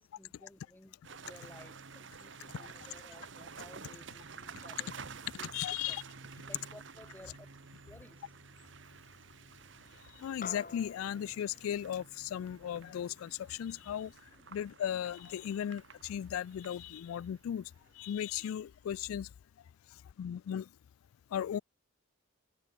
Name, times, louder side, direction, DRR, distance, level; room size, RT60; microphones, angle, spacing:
voice 1, 0.0-4.9 5.4-5.5 5.9-6.0 6.5-7.5 7.8-8.2, left 1 dB, 10° left, 0.8 m, -56 dB
sound 1, 1.0-18.2, right 5 dB, 60° right, 1.3 m, -51 dB
voice 2, 5.5-6.0 10.1-19.3 19.9-20.7 21.3-21.6, left 9 dB, 90° left, 0.3 m, -37 dB
sound 2, 10.4-15.0, left 4 dB, 40° left, 2.0 m, -51 dB
head